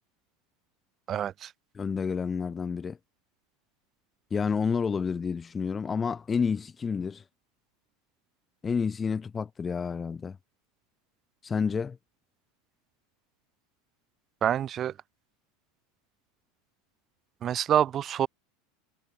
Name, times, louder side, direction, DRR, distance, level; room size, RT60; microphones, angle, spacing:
voice 1, 1.1-1.5 14.4-15.0 17.4-18.3, right 10 dB, 40° right, 4.4 m, -26 dB
voice 2, 1.8-3.0 4.3-7.2 8.6-10.4 11.4-12.0, left 5 dB, 25° left, 1.7 m, -29 dB
hypercardioid pair, 85°, 0 cm